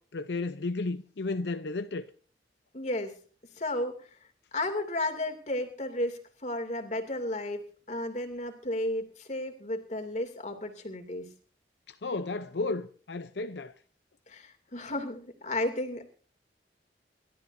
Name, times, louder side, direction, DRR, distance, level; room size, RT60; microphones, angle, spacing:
voice 1, 0.0-2.1 11.9-13.7, left 3 dB, 80° left, 0.7 m, -33 dB
voice 2, 2.7-3.1 3.6-4.1 4.5-11.3 14.3-16.1, left 1 dB, 40° left, 2.6 m, -33 dB
28.0 x 13.0 x 2.7 m
head